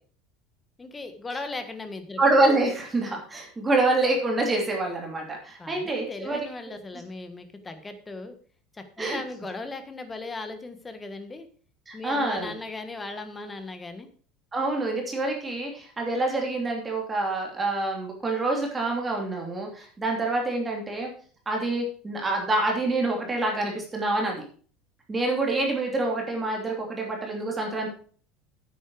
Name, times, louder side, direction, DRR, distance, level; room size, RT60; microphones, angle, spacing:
voice 1, 0.8-2.2 5.6-8.4 8.7-11.5 11.9-14.1, left 3 dB, 15° left, 8 dB, 1.5 m, -37 dB
voice 2, 2.2-6.5 9.0-9.2 11.9-12.5 14.5-21.1 21.5-24.4 25.1-27.9, right 2 dB, 15° right, 0 dB, 2.9 m, -26 dB
9.6 x 8.9 x 4.9 m, 0.43 s
cardioid pair, 155°, 0 cm